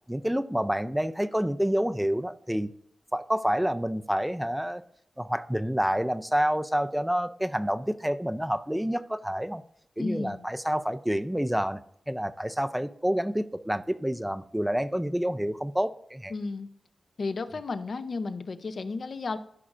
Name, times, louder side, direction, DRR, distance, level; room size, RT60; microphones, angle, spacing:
voice 1, 0.1-2.7 3.1-4.8 5.2-9.6 10.0-11.8 12.1-16.3, equal, 5° right, 0.4 m, -28 dB
voice 2, 10.0-10.4 16.3-16.7 17.2-19.4, left 3 dB, 55° left, 0.7 m, -33 dB
14.5 x 6.1 x 2.5 m
wide cardioid pair, 115°, 0 cm